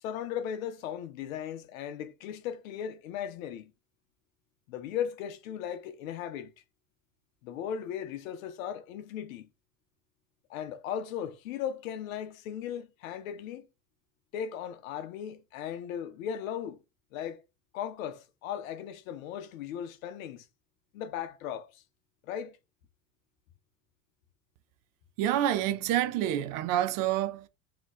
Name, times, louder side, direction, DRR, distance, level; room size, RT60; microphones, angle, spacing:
voice 1, 0.0-3.7 4.7-6.5 7.4-9.5 10.5-13.7 14.3-16.8 17.1-17.4 17.7-20.5 20.9-21.8 22.3-22.6, left 9 dB, 85° left, 0.7 m, -37 dB
voice 2, 25.2-27.5, right 12 dB, 55° right, 0.6 m, -28 dB
2.9 x 2.4 x 4.1 m
supercardioid pair, 105°, 40 cm